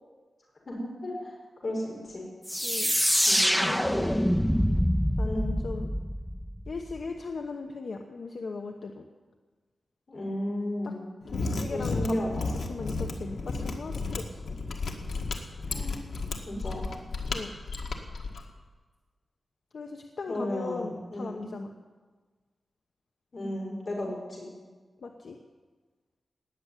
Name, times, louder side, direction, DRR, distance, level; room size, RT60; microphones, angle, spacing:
voice 1, 0.7-1.3 1.6-2.2 3.3-3.7 5.2-5.6 10.1-11.1 11.7-12.5 15.7-16.0 16.4-16.9 20.3-21.5 23.3-24.5, left 1 dB, 40° left, -3 dB, 5.7 m, -34 dB
sound 1, 2.5-7.0, equal, ahead, 0.4 m, -26 dB
voice 2, 2.6-2.9 3.6-4.2 5.2-5.9 6.7-9.0 10.8-10.9 11.3-12.2 12.7-14.4 17.3-17.5 19.7-21.7 25.0-25.4, left 4 dB, 60° left, 3 dB, 1.0 m, -38 dB
Mechanisms, 11.2-18.4, left 3 dB, 90° left, 1.7 m, -33 dB
18.5 x 7.0 x 9.7 m, 1.4 s
wide cardioid pair, 170°, 0 cm